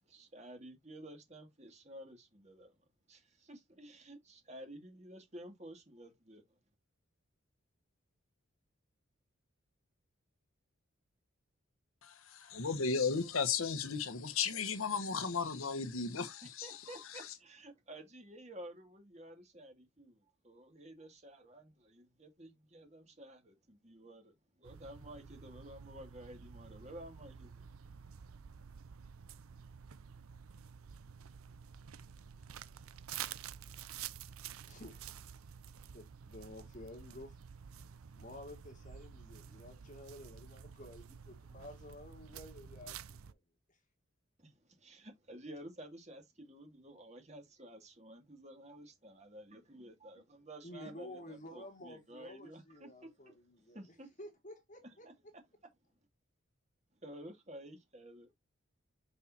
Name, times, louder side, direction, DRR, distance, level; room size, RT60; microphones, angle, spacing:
voice 1, 0.1-2.7 3.1-6.4 16.4-27.6 44.4-53.1 53.7-54.1 54.8-55.1 57.0-58.3, right 1 dB, 30° right, 2.3 m, -52 dB
voice 2, 12.0-16.8 17.1-17.3, left 5 dB, 80° left, 1.2 m, -35 dB
sound 1, 24.6-43.3, right 8 dB, 90° right, 0.6 m, -50 dB
voice 3, 34.7-35.0 35.9-37.4 38.2-43.4 50.6-53.8 54.2-55.1, left 1 dB, 35° left, 2.0 m, -51 dB
6.4 x 5.5 x 2.8 m
head